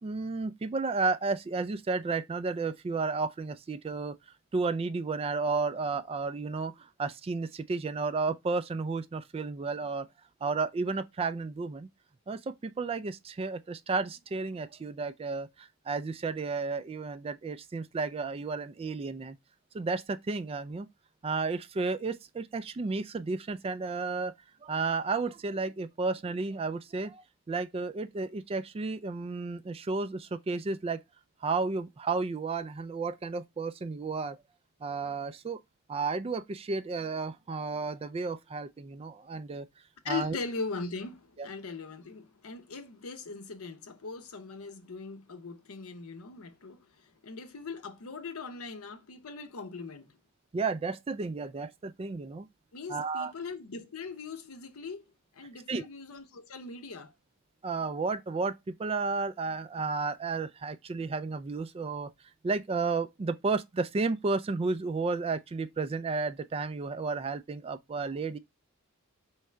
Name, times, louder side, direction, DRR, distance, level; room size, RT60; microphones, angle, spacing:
voice 1, 0.0-4.2 4.5-10.1 10.4-11.9 12.3-19.4 19.7-20.9 21.2-24.3 24.6-31.0 31.4-34.4 34.8-35.6 35.9-39.7 40.1-40.4 41.4-41.5 50.5-52.5 52.9-53.3 55.7-55.9 57.6-62.1 62.4-68.4, right 4 dB, 25° right, 0.3 m, -32 dB
voice 2, 40.0-50.1 52.7-55.0 55.3-57.1, left 4 dB, 80° left, 0.8 m, -40 dB
3.6 x 3.2 x 4.4 m
head